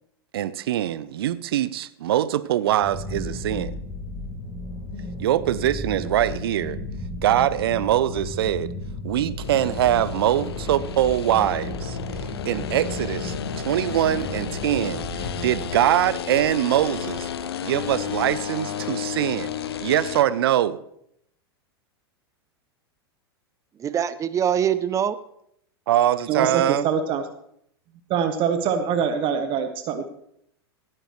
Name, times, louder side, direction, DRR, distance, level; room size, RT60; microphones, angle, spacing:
voice 1, 0.3-3.7 5.2-6.8 7.2-8.7 9.0-12.0 12.5-17.3 17.6-20.8 25.9-26.9, right 12 dB, 70° right, 16 dB, 0.6 m, -23 dB
sound 1, 2.8-15.5, left 1 dB, 35° left, 3.8 m, -34 dB
sound 2, 9.4-20.2, left 9 dB, 75° left, 0.7 m, -32 dB
Hammer, 13.2-14.5 14.9-17.5, right 2 dB, 90° right, 2.8 m, -43 dB
voice 2, 23.8-25.2, right 9 dB, 25° right, 14 dB, 0.5 m, -23 dB
voice 3, 26.3-27.2 28.1-30.1, right 7 dB, 40° right, 8 dB, 1.0 m, -24 dB
17.0 x 9.0 x 3.2 m, 0.72 s
hypercardioid pair, 95°, 13 cm